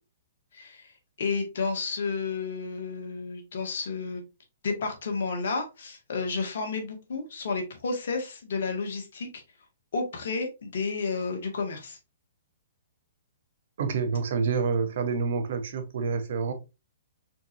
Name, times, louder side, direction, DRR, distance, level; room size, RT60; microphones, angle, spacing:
voice 1, 0.5-0.9 1.2-4.2 4.6-9.3 9.9-12.0, left 4 dB, 65° left, 1.6 m, -31 dB
voice 2, 13.8-16.5, right 5 dB, 60° right, 1.0 m, -28 dB
4.4 x 4.1 x 2.7 m
hypercardioid pair, 130°, 0 cm